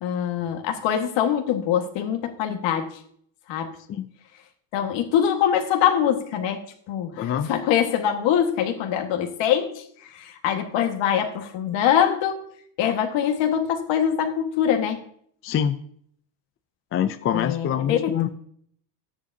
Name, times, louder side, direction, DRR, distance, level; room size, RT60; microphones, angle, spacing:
voice 1, 0.0-3.0 3.5-3.8 4.7-6.6 6.9-12.4 12.8-15.0 17.3-18.2, left 9 dB, 60° left, 5 dB, 1.7 m, -23 dB
voice 2, 7.2-7.5 15.4-15.8 16.9-18.3, left 9 dB, 30° left, 9 dB, 0.4 m, -25 dB
13.5 x 9.7 x 2.7 m, 0.63 s
cardioid pair, 125°, 49 cm